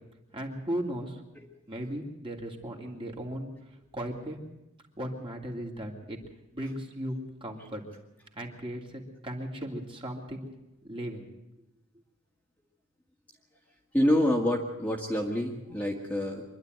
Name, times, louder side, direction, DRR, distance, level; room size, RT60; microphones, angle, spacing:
voice 1, 0.3-1.2 1.7-3.5 3.9-4.4 5.0-6.2 6.5-7.8 8.3-10.5 10.8-11.3, equal, 25° right, 0 dB, 2.9 m, -36 dB
voice 2, 13.9-16.4, left 1 dB, 5° left, -1 dB, 2.0 m, -27 dB
25.0 x 11.5 x 9.4 m, 0.93 s
head